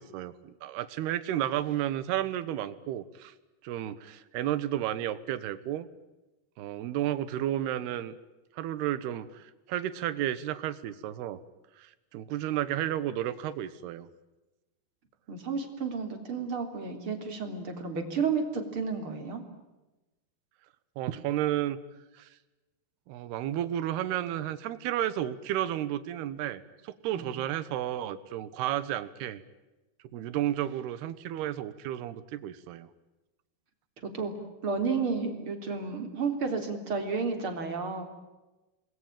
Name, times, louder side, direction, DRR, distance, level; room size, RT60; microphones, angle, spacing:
voice 1, 0.0-3.3 3.6-5.9 6.6-8.1 8.6-11.4 11.8-14.1 21.0-21.8 22.2-22.3 23.1-29.4 30.1-32.9, right 12 dB, 80° right, 15 dB, 3.3 m, -32 dB
voice 2, 15.3-19.4 27.1-27.3 34.0-34.3 34.6-38.1, right 5 dB, 35° right, 6 dB, 4.0 m, -32 dB
28.0 x 21.5 x 9.0 m, 1.1 s
omnidirectional pair, 4.6 m